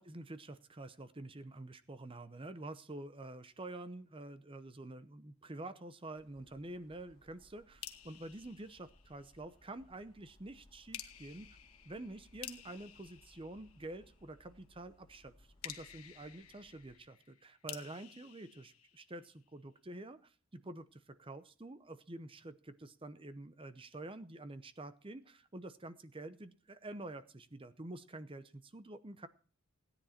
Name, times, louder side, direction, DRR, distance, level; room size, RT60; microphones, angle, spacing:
voice 1, 0.0-11.6 11.8-29.3, right 2 dB, 25° right, 12 dB, 0.7 m, -48 dB
sound 1, 6.1-17.0, left 1 dB, 25° left, 2.3 m, -66 dB
sound 2, 7.8-9.5 10.9-14.3 15.6-19.5, left 11 dB, 80° left, 1.5 m, -52 dB
17.0 x 10.0 x 4.3 m, 0.40 s
head